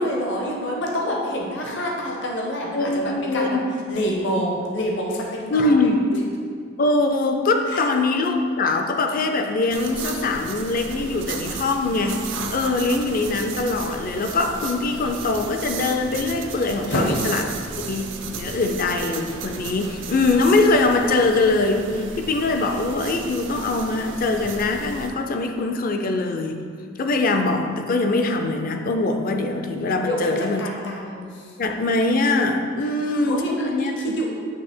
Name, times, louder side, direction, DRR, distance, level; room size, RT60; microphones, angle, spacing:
voice 1, 0.0-3.6 3.9-5.9 7.7-7.8 16.9-17.3 18.5-18.6 30.0-31.5 33.0-34.3, equal, 65° left, -1 dB, 0.9 m, -27 dB
voice 2, 2.7-3.6 5.5-6.0 6.8-12.3 12.5-17.4 17.8-26.6 27.0-30.7 31.6-34.2, left 3 dB, 45° left, 5 dB, 0.5 m, -22 dB
sound 1, 9.7-25.1, right 4 dB, 70° right, 0.6 m, -34 dB
8.6 x 3.2 x 4.4 m, 2.1 s
head